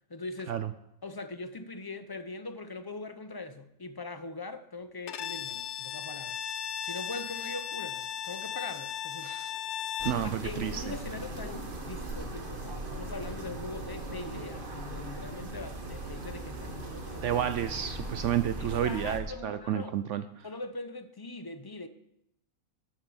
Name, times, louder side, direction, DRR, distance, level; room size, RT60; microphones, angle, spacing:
voice 1, 0.1-0.6 1.0-6.4 6.8-9.4 10.2-17.4 18.6-20.0 20.4-21.9, left 3 dB, 30° left, 0.4 m, -41 dB
Bowed string instrument, 5.1-10.3, left 9 dB, 65° left, 1.0 m, -36 dB
sound 1, 10.0-19.2, right 2 dB, 40° right, 1.6 m, -39 dB
voice 2, 10.0-10.8 17.2-20.2, right 10 dB, 70° right, 0.9 m, -30 dB
9.2 x 8.9 x 7.1 m
omnidirectional pair, 1.4 m